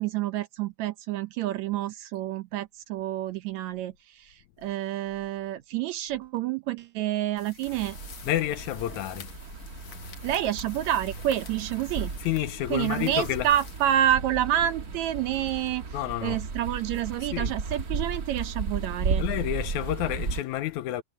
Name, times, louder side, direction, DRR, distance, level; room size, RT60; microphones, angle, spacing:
voice 1, 0.0-8.0 10.2-12.1 12.7-15.9 16.2-19.2, right 12 dB, 75° right, 1.8 m, -28 dB
sound 1, 7.4-14.5, left 8 dB, 60° left, 2.9 m, -49 dB
sound 2, 7.7-20.4, right 4 dB, 40° right, 1.6 m, -35 dB
voice 2, 8.2-9.4 9.9-10.2 12.2-13.5 15.9-16.4 17.2-17.5 19.2-21.0, left 13 dB, 75° left, 2.0 m, -30 dB
omnidirectional pair, 3.7 m